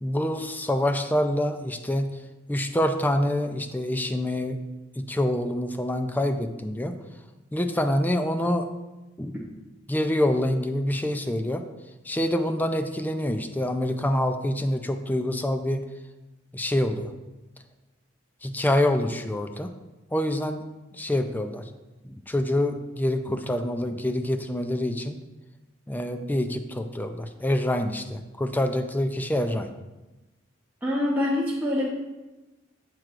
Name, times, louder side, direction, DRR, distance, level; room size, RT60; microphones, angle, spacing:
voice 1, 0.0-2.1 2.5-4.6 5.0-6.9 7.5-8.7 9.2-9.4 9.9-11.6 12.1-15.8 16.5-17.1 18.4-19.7 20.1-20.6 21.0-21.6 22.0-25.1 25.9-29.7, left 1 dB, 10° left, 7 dB, 0.4 m, -26 dB
voice 2, 30.8-31.8, left 1 dB, 10° right, -7 dB, 0.8 m, -25 dB
7.6 x 7.5 x 2.5 m, 1.1 s
head